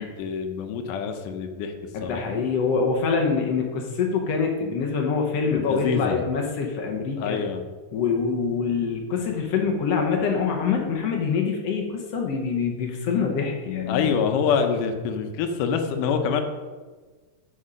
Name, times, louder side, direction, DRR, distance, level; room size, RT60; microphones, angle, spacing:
voice 1, 0.0-1.7 2.0-2.2 5.7-6.3 7.2-7.6 13.9-16.4, left 6 dB, 85° left, 6 dB, 2.4 m, -25 dB
voice 2, 1.9-7.4 7.9-14.2, left 5 dB, 70° left, 2 dB, 1.6 m, -25 dB
8.6 x 5.6 x 5.1 m, 1.4 s
omnidirectional pair, 3.7 m